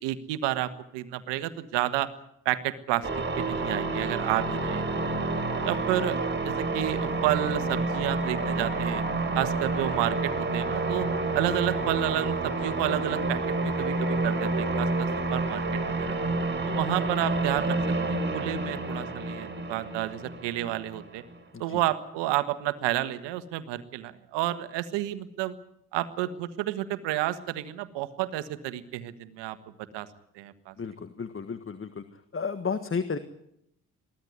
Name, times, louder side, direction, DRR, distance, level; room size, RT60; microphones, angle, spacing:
voice 1, 0.0-2.1 2.4-3.1 3.4-5.1 5.6-6.2 6.4-9.0 9.3-11.1 11.3-16.2 16.6-17.8 18.1-21.2 21.6-25.5 25.9-29.6 29.9-30.1 30.3-30.7, right 14 dB, 75° right, 13 dB, 1.6 m, -30 dB
sound 1, 3.0-21.3, right 2 dB, 25° right, 4.2 m, -29 dB
voice 2, 30.8-32.0 32.3-33.2, left 5 dB, 30° left, 11 dB, 1.6 m, -32 dB
23.0 x 15.5 x 9.5 m, 0.78 s
hypercardioid pair, 50°, 43 cm